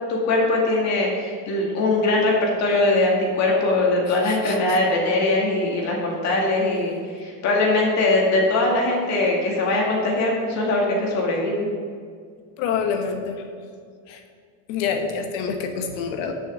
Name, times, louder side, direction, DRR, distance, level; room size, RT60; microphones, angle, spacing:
voice 1, 0.1-11.7, left 2 dB, 40° left, -3 dB, 2.2 m, -21 dB
voice 2, 4.1-4.6 12.6-13.4 14.1-14.2 14.7-16.3, left 6 dB, 80° left, 5 dB, 1.3 m, -27 dB
6.5 x 6.5 x 7.2 m, 2.1 s
cardioid pair, 165°, 41 cm